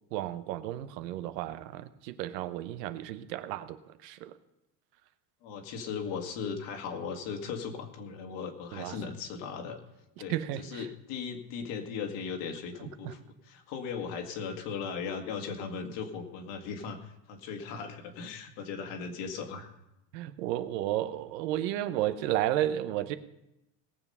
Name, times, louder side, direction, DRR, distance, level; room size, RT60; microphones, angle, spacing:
voice 1, 0.1-4.3 8.7-9.0 10.3-10.9 13.0-13.1 20.1-23.2, right 13 dB, 80° right, 11 dB, 1.0 m, -33 dB
voice 2, 5.4-9.8 10.2-19.7, left 6 dB, 60° left, 5 dB, 2.0 m, -38 dB
18.5 x 7.2 x 5.5 m, 0.88 s
supercardioid pair, 135°, 47 cm